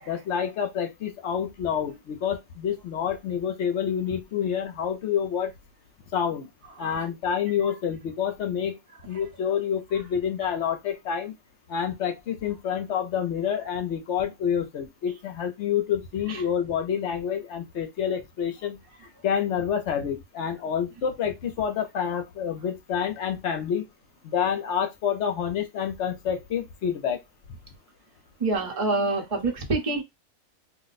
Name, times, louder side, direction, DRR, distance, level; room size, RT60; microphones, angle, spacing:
voice 1, 0.1-5.5 6.1-6.5 6.8-8.8 9.0-11.3 11.7-18.8 19.2-23.8 24.2-27.2, left 8 dB, 65° left, 0.9 m, -28 dB
voice 2, 28.4-30.0, right 3 dB, 30° right, 0.8 m, -26 dB
2.6 x 2.1 x 3.9 m
omnidirectional pair, 1.4 m